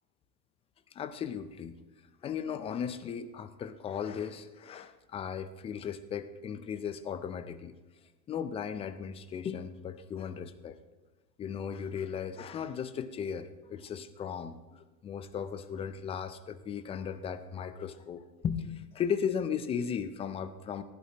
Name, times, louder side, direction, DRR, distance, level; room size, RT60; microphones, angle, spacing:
voice 1, 0.9-1.8 2.2-7.7 8.3-10.8 11.4-20.8, left 7 dB, 15° left, 12 dB, 0.4 m, -36 dB
19.0 x 12.0 x 2.9 m, 1.2 s
hypercardioid pair, 105°, 48 cm